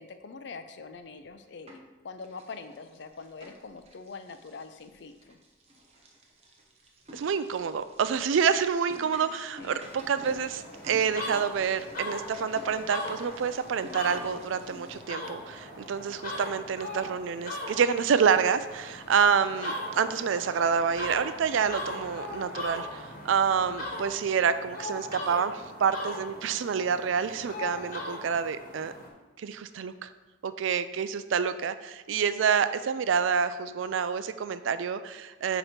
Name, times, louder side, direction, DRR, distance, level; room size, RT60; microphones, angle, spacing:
voice 1, 0.0-5.4 9.6-9.8, left 4 dB, 60° left, 9 dB, 0.5 m, -44 dB
sound 1, 1.1-1.9 2.2-15.0, equal, 30° right, 0.9 m, -51 dB
voice 2, 7.1-28.9 29.4-30.1 30.4-35.6, right 6 dB, 80° right, 12 dB, 0.4 m, -28 dB
sound 2, 9.8-29.1, left 1 dB, 45° left, 1.3 m, -39 dB
8.3 x 3.0 x 5.1 m, 1.2 s
head